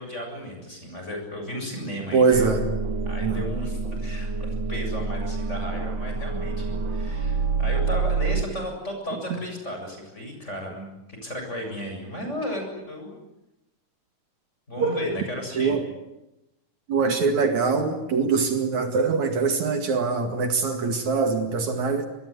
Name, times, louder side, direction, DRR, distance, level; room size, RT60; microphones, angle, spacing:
voice 1, 0.0-2.5 3.0-13.2 14.7-15.8, left 1 dB, 20° left, 3 dB, 7.9 m, -34 dB
voice 2, 2.1-2.6 3.2-3.4 14.8-15.0 15.6-15.9 16.9-22.0, right 4 dB, 65° right, 6 dB, 3.3 m, -23 dB
sound 1, 2.3-8.4, right 4 dB, 45° right, 2.0 m, -27 dB
25.5 x 22.0 x 9.8 m, 0.91 s
omnidirectional pair, 3.6 m